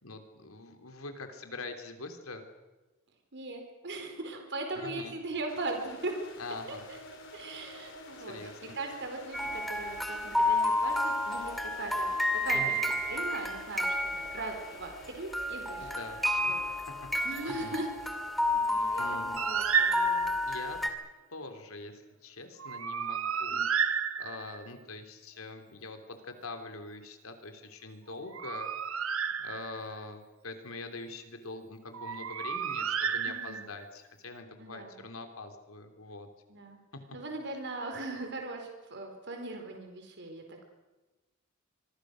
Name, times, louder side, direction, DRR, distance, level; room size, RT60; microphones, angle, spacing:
voice 1, 0.0-2.4 4.7-5.2 6.4-6.9 8.2-8.8 12.5-12.8 15.8-16.9 17.4-17.8 19.0-19.4 20.4-20.8 21.3-23.7 24.2-28.7 29.4-36.3 36.9-37.0, left 3 dB, 85° left, 6 dB, 3.2 m, -44 dB
voice 2, 3.3-6.1 6.9-7.0 7.3-12.7 13.1-14.0 14.3-15.9 16.3-16.6 17.2-17.9 18.7-20.3 23.5-23.6 33.2-33.7 34.6-35.0 36.5-36.8 37.1-40.7, right 2 dB, 60° right, 3 dB, 4.4 m, -39 dB
sound 1, 5.5-22.3, left 1 dB, 60° left, 4.3 m, -51 dB
sound 2, 9.3-15.1 15.3-20.9, left 1 dB, ahead, 2.3 m, -31 dB
Bird, 19.4-20.5 22.6-24.7 28.1-30.0 31.9-33.9, right 7 dB, 80° right, 1.3 m, -31 dB
25.5 x 23.5 x 6.4 m, 1.1 s
head